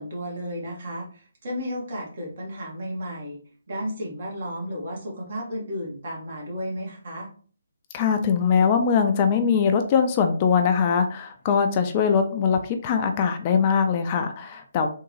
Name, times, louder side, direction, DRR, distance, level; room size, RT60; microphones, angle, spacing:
voice 1, 0.0-3.4 3.7-7.3, equal, 50° right, -1 dB, 1.5 m, -33 dB
voice 2, 7.9-14.9, left 6 dB, 30° left, 6 dB, 0.4 m, -22 dB
3.7 x 2.6 x 3.0 m, 0.43 s
figure-of-eight pair, 140°, 0 cm